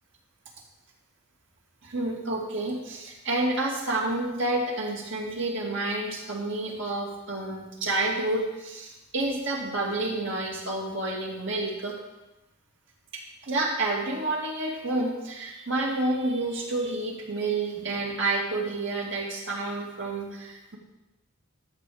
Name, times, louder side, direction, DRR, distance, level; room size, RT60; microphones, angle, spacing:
voice 1, 1.8-12.0 13.4-20.8, right 2 dB, 65° right, -2 dB, 2.3 m, -29 dB
12.0 x 4.2 x 7.8 m, 1.0 s
head